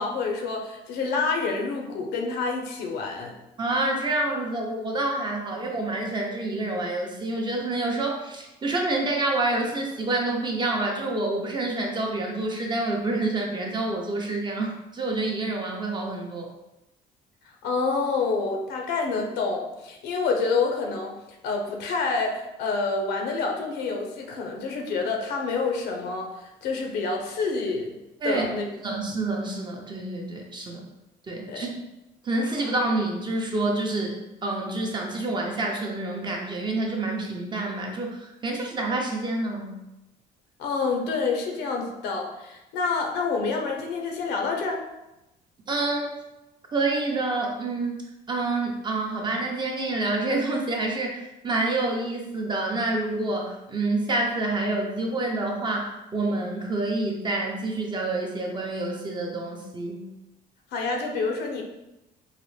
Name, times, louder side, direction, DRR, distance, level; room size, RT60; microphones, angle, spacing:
voice 1, 0.0-3.3 17.6-21.2 21.4-27.9 28.2-28.7 31.5-31.6 40.6-44.8 60.7-61.6, left 4 dB, 80° left, 1 dB, 0.7 m, -28 dB
voice 2, 3.6-16.5 28.2-28.5 28.8-30.8 31.3-31.7 32.2-34.1 34.4-39.8 45.7-46.2 46.7-48.0 48.3-60.0, right 2 dB, 25° right, 0 dB, 0.6 m, -28 dB
3.9 x 2.0 x 3.1 m, 0.95 s
cardioid pair, 110°, 17 cm